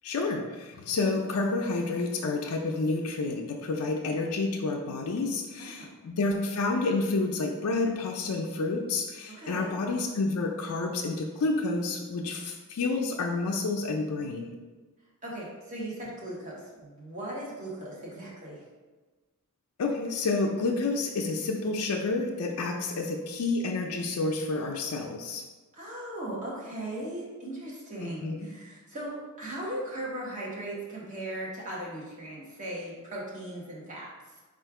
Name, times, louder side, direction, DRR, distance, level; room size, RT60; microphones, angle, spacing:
voice 1, 0.0-14.5 19.8-25.4 28.0-28.4, left 3 dB, 85° left, 1 dB, 0.4 m, -29 dB
voice 2, 5.6-5.9 9.3-9.8 15.2-18.6 25.7-34.4, right 1 dB, 35° right, -5 dB, 1.2 m, -38 dB
4.2 x 2.5 x 4.7 m, 1.3 s
head